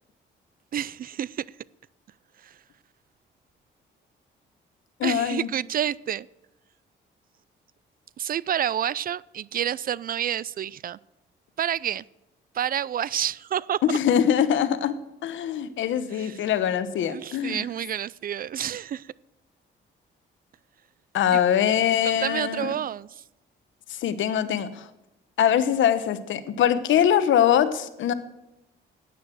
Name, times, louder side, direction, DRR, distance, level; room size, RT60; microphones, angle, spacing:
voice 1, 0.7-1.4 5.0-6.3 8.2-11.0 11.6-12.0 12.5-13.8 16.1-16.4 17.1-19.1 21.3-21.4 22.0-23.1, right 10 dB, 45° right, 0.4 m, -29 dB
voice 2, 5.0-5.5 13.8-14.9 15.2-17.7 21.1-22.7 23.9-24.9 25.4-28.1, left 9 dB, 75° left, 1.1 m, -23 dB
13.0 x 9.4 x 7.7 m
cardioid pair, 90°, 20 cm